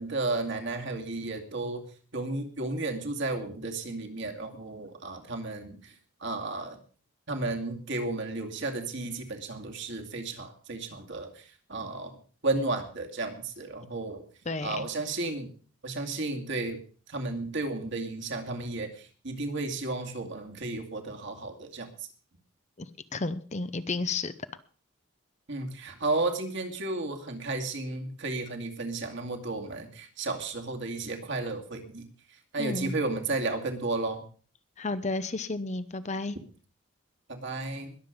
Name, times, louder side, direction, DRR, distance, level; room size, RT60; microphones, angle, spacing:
voice 1, 0.0-1.9 2.1-5.9 6.2-6.8 7.3-12.1 12.4-14.2 14.6-15.5 15.8-16.8 17.1-22.1 25.5-32.1 32.5-34.2 37.3-38.0, right 2 dB, 55° right, 3 dB, 2.3 m, -33 dB
voice 2, 14.5-14.9 22.8-22.9 23.1-24.3 32.6-32.9 34.8-36.4, left 3 dB, 30° left, 13 dB, 0.7 m, -32 dB
21.0 x 7.6 x 5.2 m, 0.41 s
head